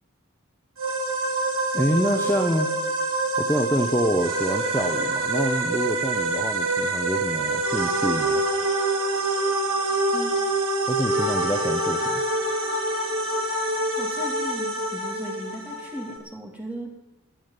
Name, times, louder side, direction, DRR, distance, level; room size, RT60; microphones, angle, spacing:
sound 1, 0.8-16.2, right 2 dB, 85° right, 3.5 m, -26 dB
voice 1, 1.7-2.7 3.4-8.4 10.9-12.2, equal, 10° left, 3 dB, 0.9 m, -26 dB
voice 2, 14.0-16.9, right 1 dB, 5° right, 0 dB, 2.8 m, -36 dB
20.5 x 7.2 x 9.5 m, 0.98 s
head